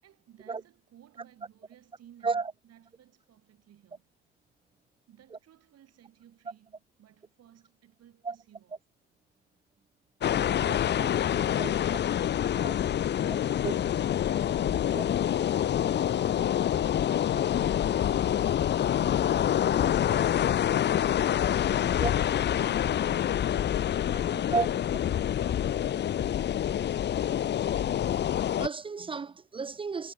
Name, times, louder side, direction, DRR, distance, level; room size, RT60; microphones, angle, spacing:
voice 1, 0.0-4.1 5.1-8.8, right 11 dB, 50° right, 6.9 m, -58 dB
sound 1, 10.2-28.7, left 10 dB, 30° left, 0.7 m, -26 dB
voice 2, 28.6-30.1, right 4 dB, 15° right, 0.5 m, -31 dB
figure-of-eight pair, 55°, 33 cm